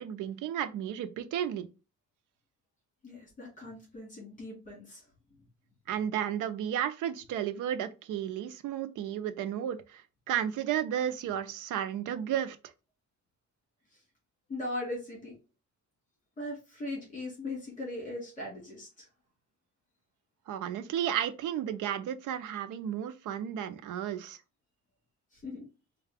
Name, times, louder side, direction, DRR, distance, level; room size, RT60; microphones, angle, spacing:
voice 1, 0.0-1.7 5.9-10.0 10.3-12.6 20.5-24.4, right 10 dB, 85° right, 0.6 m, -33 dB
voice 2, 3.0-5.0 14.5-15.3 16.4-19.1 25.4-25.6, left 2 dB, 25° left, 2.2 m, -39 dB
4.6 x 2.3 x 3.4 m
cardioid pair, 170°, 30 cm